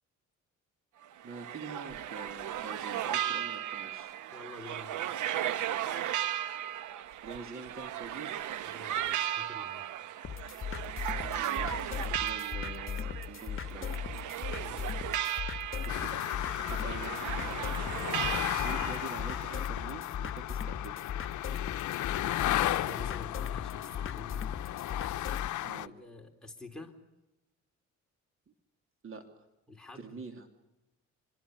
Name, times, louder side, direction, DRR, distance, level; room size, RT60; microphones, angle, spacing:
sound 1, 1.0-19.6, right 11 dB, 80° right, 1.1 m, -36 dB
voice 1, 1.2-4.1 7.2-8.4 11.2-13.9 15.8-17.7 18.5-20.9 25.6-25.9 29.0-29.2 29.9-30.5, right 4 dB, 45° right, 5 dB, 3.2 m, -45 dB
voice 2, 4.3-5.1 8.6-9.9 14.6-15.3 22.7-24.6 25.6-26.9 29.7-30.2, left 2 dB, ahead, 0 dB, 3.9 m, -48 dB
sound 2, 10.2-25.5, left 8 dB, 45° left, 1.5 m, -38 dB
sound 3, 15.9-25.9, left 14 dB, 75° left, 0.8 m, -35 dB
25.5 x 22.5 x 6.7 m, 0.99 s
cardioid pair, 90°, 30 cm